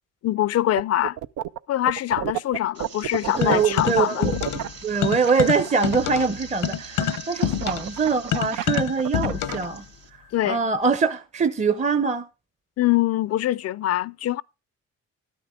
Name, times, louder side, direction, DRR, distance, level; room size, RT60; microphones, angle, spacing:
voice 1, 0.2-1.2 1.7-4.2 10.3-10.6 12.8-14.4, left 14 dB, 55° left, 0.5 m, -23 dB
sound 1, 0.8-1.6 1.9-6.3 7.0-9.7, right 12 dB, 80° right, 0.6 m, -30 dB
sound 2, 2.7-10.1, right 6 dB, 55° right, 2.7 m, -43 dB
sound 3, 3.4-4.7 5.0-9.7, left 10 dB, 85° left, 0.9 m, -27 dB
voice 2, 3.4-4.3 4.8-9.8 10.4-12.3, right 5 dB, 25° right, 0.7 m, -23 dB
12.5 x 9.4 x 3.7 m
cardioid pair, 90°, 30 cm